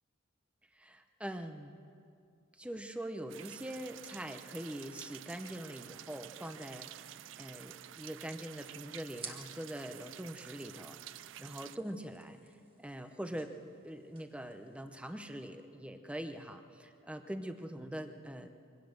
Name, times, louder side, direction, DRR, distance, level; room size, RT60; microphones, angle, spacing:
voice 1, 0.7-1.8 2.6-12.4 12.8-13.6 13.8-18.5, right 1 dB, 5° right, 7 dB, 0.8 m, -43 dB
sound 1, 3.3-11.8, right 12 dB, 70° right, 0.4 m, -50 dB
sound 2, 7.7-15.4, right 5 dB, 25° right, 1.8 m, -55 dB
24.0 x 17.5 x 6.5 m, 2.4 s
head